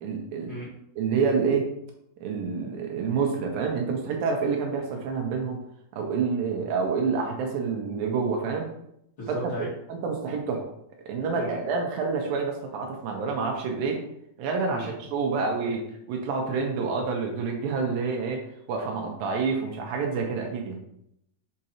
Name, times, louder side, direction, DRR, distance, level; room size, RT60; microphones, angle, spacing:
voice 1, 0.0-0.5 1.0-1.7 2.2-5.6 5.9-8.7 9.9-10.6 11.1-14.0 14.4-18.4 18.7-20.8, right 5 dB, 75° right, 1 dB, 2.5 m, -28 dB
voice 2, 9.2-9.7 11.4-11.6 14.7-14.9, equal, 35° left, -10 dB, 2.8 m, -35 dB
6.4 x 5.2 x 2.9 m, 0.75 s
omnidirectional pair, 4.3 m